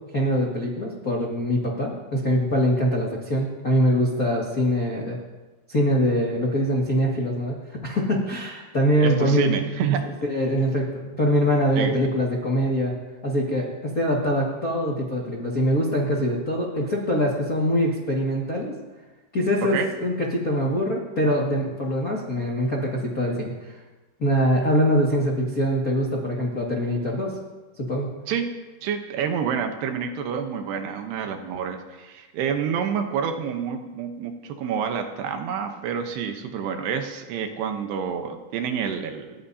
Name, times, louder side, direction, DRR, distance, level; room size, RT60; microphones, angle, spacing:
voice 1, 0.0-5.2 5.7-7.6 7.8-9.6 10.2-13.0 13.2-18.7 19.3-23.8 24.2-27.4 27.8-28.2, equal, 45° left, -3 dB, 1.1 m, -23 dB
voice 2, 9.0-10.1 11.7-12.1 19.7-19.9 28.3-28.5 28.8-39.3, right 7 dB, 75° right, 5 dB, 2.9 m, -28 dB
29.5 x 14.5 x 2.8 m, 1.2 s
omnidirectional pair, 5.1 m